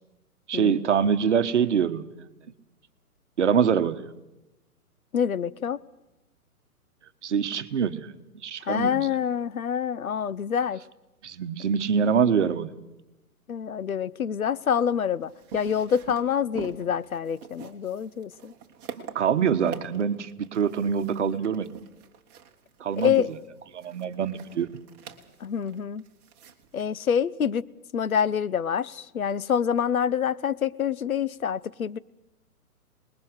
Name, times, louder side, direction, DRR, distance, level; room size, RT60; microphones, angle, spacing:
voice 1, 0.5-2.1 3.4-4.1 7.2-8.1 8.4-9.1 11.2-12.7 19.1-21.7 22.8-23.1 23.7-24.7, right 7 dB, 50° right, 1.3 m, -24 dB
voice 2, 5.1-5.8 8.7-10.8 13.5-18.5 23.0-23.3 25.4-26.0 26.7-27.6 27.9-32.0, left 8 dB, 65° left, 0.8 m, -26 dB
sound 1, 14.9-26.8, right 8 dB, 20° right, 1.6 m, -45 dB
26.0 x 20.5 x 6.5 m
figure-of-eight pair, 125°, 45 cm